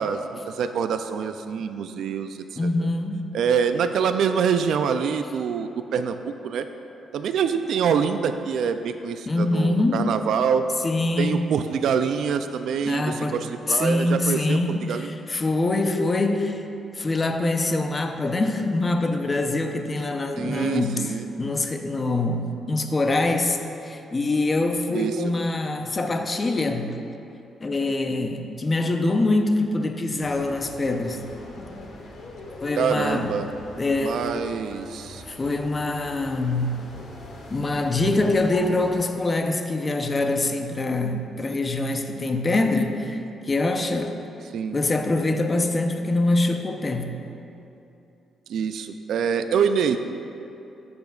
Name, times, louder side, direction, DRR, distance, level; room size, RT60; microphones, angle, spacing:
voice 1, 0.0-2.9 3.3-6.7 7.1-10.7 11.2-15.1 20.4-21.3 24.9-25.2 32.8-33.5 34.0-35.2 44.5-44.8 48.5-50.0, right 7 dB, 75° right, 9 dB, 0.3 m, -25 dB
voice 2, 2.6-3.3 9.3-10.1 10.8-11.4 12.9-13.4 13.7-16.7 16.9-27.0 27.6-31.3 31.6-31.7 32.6-33.4 33.8-34.3 35.3-36.9 37.5-44.2 44.7-47.1, left 2 dB, 30° left, 5 dB, 0.6 m, -24 dB
sound 1, 30.2-39.0, left 2 dB, 65° left, 1.3 m, -42 dB
13.0 x 6.9 x 2.4 m, 2.9 s
cardioid pair, 95°, 0 cm